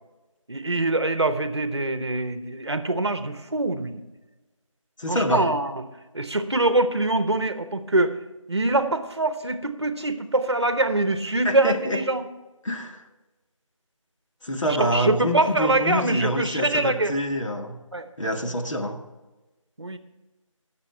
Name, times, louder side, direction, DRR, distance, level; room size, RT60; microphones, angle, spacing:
voice 1, 0.5-4.0 5.1-5.8 6.1-8.2 8.5-12.2 14.7-17.1 17.9-18.1 19.8-20.0, right 2 dB, 55° right, 10 dB, 1.0 m, -24 dB
voice 2, 5.0-5.5 11.4-12.0 12.6-13.0 14.4-17.8 18.2-19.0, equal, 70° left, 3 dB, 1.8 m, -26 dB
19.0 x 7.0 x 4.5 m, 1.2 s
figure-of-eight pair, 180°, 17 cm